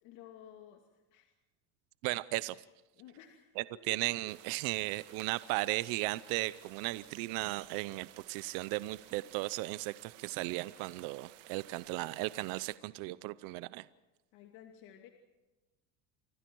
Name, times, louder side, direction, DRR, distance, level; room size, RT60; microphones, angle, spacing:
voice 1, 0.0-0.8 1.1-1.3 3.0-3.5 7.8-7.9 14.3-15.1, left 10 dB, 60° left, 3 dB, 2.4 m, -54 dB
voice 2, 2.0-2.6 3.6-13.9, right 20 dB, 60° right, 16 dB, 0.7 m, -36 dB
sound 1, 4.3-12.8, right 16 dB, 80° right, 1.7 m, -56 dB
29.0 x 24.5 x 4.7 m, 1.1 s
cardioid pair, 145°, 37 cm